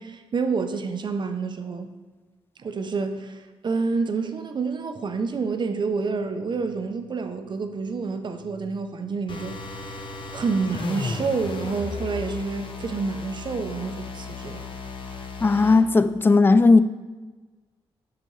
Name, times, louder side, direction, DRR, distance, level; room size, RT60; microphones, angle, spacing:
voice 1, 0.0-1.9 2.6-10.0 10.3-14.6, right 4 dB, 45° right, 7 dB, 0.6 m, -28 dB
sound 1, 9.3-15.8, left 3 dB, 50° left, 0.9 m, -35 dB
voice 2, 15.4-16.8, left 3 dB, 20° left, 12 dB, 0.3 m, -16 dB
6.7 x 6.7 x 3.2 m, 1.3 s
cardioid pair, 80°, 11 cm